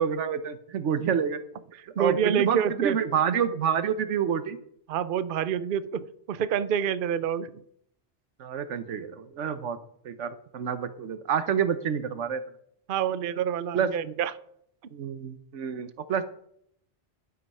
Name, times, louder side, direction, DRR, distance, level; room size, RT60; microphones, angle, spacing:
voice 1, 0.0-1.4 2.0-4.6 8.4-9.8 10.0-12.4 13.7-13.9 14.9-16.2, right 7 dB, 90° right, 13 dB, 1.2 m, -28 dB
voice 2, 2.0-3.0 4.9-7.5 12.9-14.3, right 8 dB, 55° right, 15 dB, 0.7 m, -27 dB
12.0 x 8.0 x 5.5 m, 0.71 s
omnidirectional pair, 1.2 m